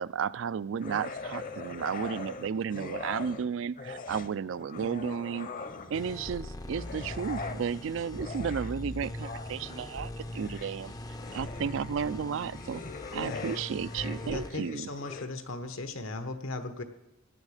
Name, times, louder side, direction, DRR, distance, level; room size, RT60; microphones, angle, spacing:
voice 1, 0.0-5.5 5.9-10.9 11.3-12.8 13.1-14.9, right 6 dB, 70° right, 19 dB, 0.4 m, -33 dB
sound 1, 0.8-3.5 3.8-6.1 6.7-15.3, left 4 dB, 45° left, 0.8 m, -42 dB
sound 2, 5.9-14.5, left 1 dB, 20° left, 0.4 m, -41 dB
voice 2, 14.2-16.8, left 2 dB, 85° left, 8 dB, 1.2 m, -37 dB
17.0 x 10.5 x 4.9 m, 0.89 s
head